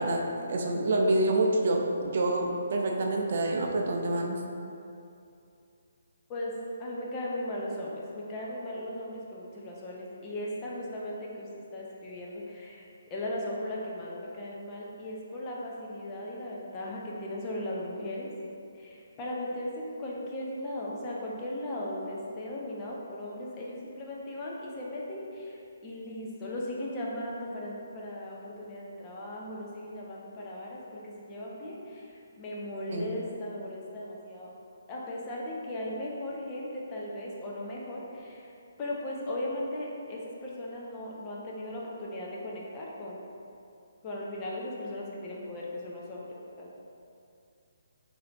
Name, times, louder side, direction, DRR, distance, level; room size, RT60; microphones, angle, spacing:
voice 1, 0.0-4.4 32.9-33.1, right 2 dB, 55° right, 1 dB, 0.4 m, -27 dB
voice 2, 6.8-18.3 18.7-34.6 34.9-38.5 38.8-43.2 44.0-46.7, left 1 dB, 25° left, -4 dB, 0.5 m, -37 dB
4.1 x 2.7 x 2.6 m, 2.6 s
hypercardioid pair, 150°, 0 cm